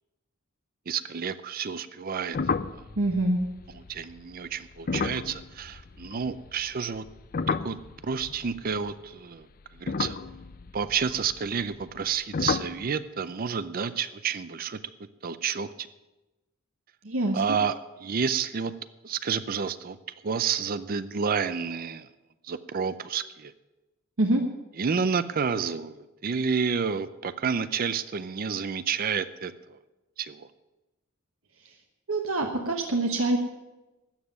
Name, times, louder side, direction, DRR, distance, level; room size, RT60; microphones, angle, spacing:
voice 1, 0.9-2.4 3.7-7.1 7.5-7.8 8.0-9.5 9.8-10.2 10.7-14.8 15.2-15.9 17.3-18.7 19.0-20.0 20.2-22.1 22.4-23.5 24.8-29.8 30.2-30.5, right 6 dB, 45° right, 14 dB, 0.5 m, -30 dB
sound 1, 2.3-6.7 6.9-9.1 9.7-12.1 12.3-12.9, left 4 dB, 45° left, 0.5 m, -32 dB
voice 2, 3.0-3.4 17.0-17.6 24.2-24.4 32.1-33.4, right 2 dB, 80° right, 3 dB, 1.2 m, -25 dB
13.0 x 7.5 x 9.4 m, 1.1 s
head